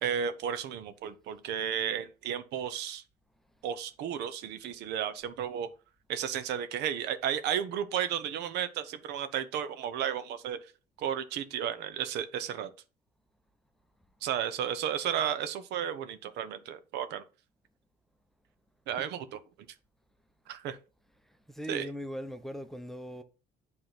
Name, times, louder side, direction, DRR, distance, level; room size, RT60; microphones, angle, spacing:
voice 1, 0.0-3.0 3.6-5.7 6.1-10.6 11.0-12.7 14.2-17.2 18.9-19.4 20.5-20.8 21.7-21.9, right 9 dB, 85° right, 0.9 m, -33 dB
voice 2, 21.5-23.2, equal, ahead, 0.9 m, -39 dB
7.8 x 3.8 x 5.9 m
cardioid pair, 110°, 17 cm